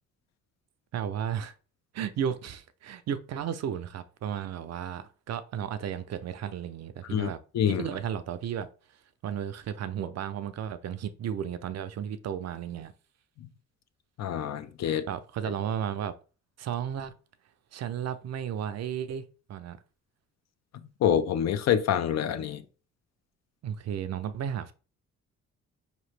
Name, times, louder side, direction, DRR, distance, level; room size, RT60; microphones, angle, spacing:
voice 1, 0.9-1.5 1.9-7.4 7.7-8.7 9.2-12.9 15.1-16.1 16.6-17.1 17.7-19.8 23.6-24.7, right 9 dB, 60° right, 0.5 m, -34 dB
voice 2, 7.5-7.9 13.4-13.5 14.2-15.1 21.0-22.6, left 9 dB, 60° left, 0.6 m, -26 dB
4.8 x 2.9 x 3.2 m
cardioid pair, 90°, 30 cm